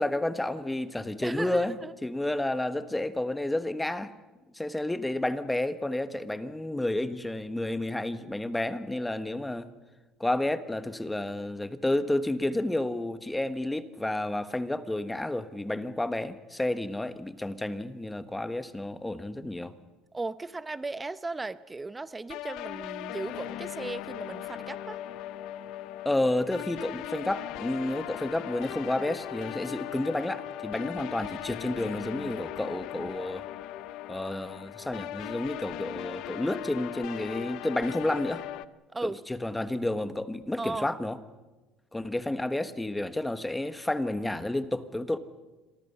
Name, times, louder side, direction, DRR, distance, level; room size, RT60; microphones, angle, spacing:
voice 1, 0.0-1.7 2.0-4.1 4.5-9.7 10.2-19.7 26.0-33.5 34.1-38.4 39.0-41.2 41.9-45.2, left 1 dB, 10° left, 11 dB, 1.3 m, -30 dB
voice 2, 1.2-1.9 20.1-25.0 38.9-39.2 40.6-40.9, right 3 dB, 15° right, 14 dB, 0.8 m, -36 dB
sound 1, 22.3-38.7, left 14 dB, 70° left, 0.8 m, -39 dB
27.5 x 23.5 x 5.7 m, 1.2 s
cardioid pair, 115°, 0 cm